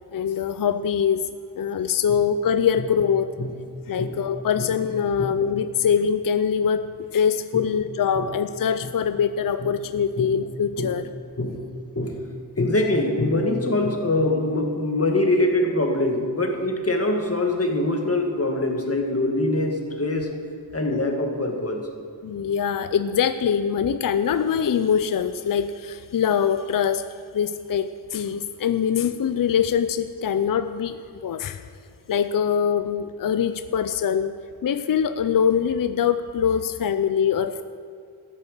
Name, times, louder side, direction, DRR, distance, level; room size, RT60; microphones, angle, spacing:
voice 1, 0.1-1.3 1.6-3.3 3.9-6.9 7.1-11.1 22.2-27.1 27.3-31.0 31.2-31.6 32.1-34.3 34.6-37.6, left 7 dB, 55° left, 11 dB, 0.5 m, -23 dB
voice 2, 12.6-20.3 20.7-21.9, left 2 dB, 35° left, 2 dB, 1.9 m, -24 dB
13.5 x 8.3 x 6.6 m, 2.4 s
wide cardioid pair, 90°, 41 cm